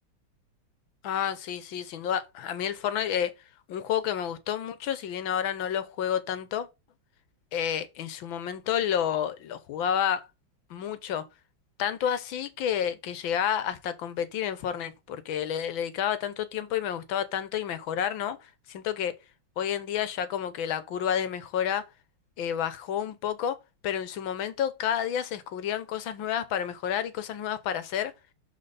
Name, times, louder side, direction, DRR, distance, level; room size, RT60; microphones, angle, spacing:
voice 1, 1.0-3.3 3.7-6.7 7.5-10.3 10.7-11.2 11.8-19.1 19.6-21.8 22.4-23.6 23.8-28.1, left 9 dB, 75° left, 1.6 m, -30 dB
12.0 x 4.1 x 4.1 m
omnidirectional pair, 2.2 m